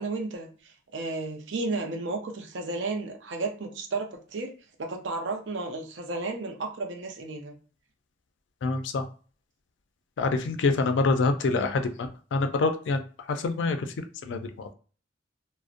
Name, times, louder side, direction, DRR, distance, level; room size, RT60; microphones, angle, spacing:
voice 1, 0.0-4.5 4.8-7.5, right 3 dB, 65° right, 3 dB, 0.5 m, -33 dB
voice 2, 8.6-9.0 10.2-13.0 13.3-13.8 14.3-14.7, left 3 dB, 70° left, 7 dB, 0.4 m, -26 dB
2.5 x 2.0 x 2.4 m, 0.39 s
head